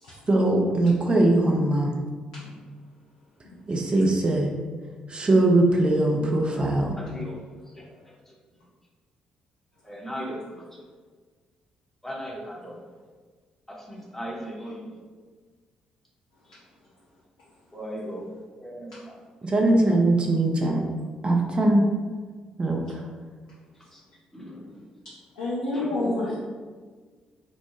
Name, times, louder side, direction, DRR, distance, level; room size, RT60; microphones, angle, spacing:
voice 1, 0.3-1.9 3.7-4.5 5.1-7.0 19.4-20.8 21.2-21.9 22.6-23.0, right 2 dB, 30° right, 0 dB, 0.5 m, -21 dB
voice 2, 7.0-7.3 9.8-10.6 12.0-12.7 13.7-14.8 17.7-18.2 18.6-19.1 23.9-24.0 24.3-24.7 25.7-26.4, equal, 5° left, -4 dB, 0.9 m, -37 dB
voice 3, 25.4-26.4, left 2 dB, 80° left, -9 dB, 0.5 m, -28 dB
3.0 x 2.0 x 2.8 m, 1.5 s
figure-of-eight pair, 40°, 3 cm